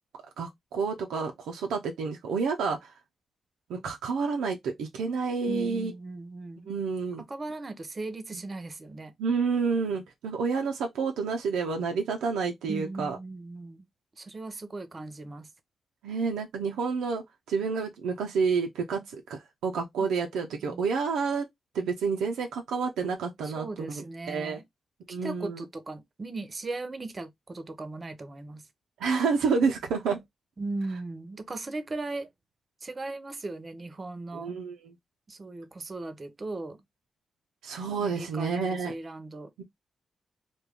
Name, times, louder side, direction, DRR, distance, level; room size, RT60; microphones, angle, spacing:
voice 1, 0.4-2.9 3.7-5.9 6.7-7.2 8.3-8.4 9.2-13.2 16.0-21.4 21.7-24.6 25.1-25.6 29.0-30.2 34.3-34.9 37.6-38.9 39.6-39.7, right 5 dB, 85° right, 0.4 m, -29 dB
voice 2, 5.4-6.8 7.3-9.1 12.7-13.9 14.2-15.5 20.0-20.1 20.6-20.9 23.4-24.6 25.1-28.6 30.6-32.3 32.8-34.5 35.3-36.8 38.0-39.5, right 2 dB, 45° right, 0.6 m, -38 dB
2.2 x 2.2 x 3.3 m
supercardioid pair, 45°, 0 cm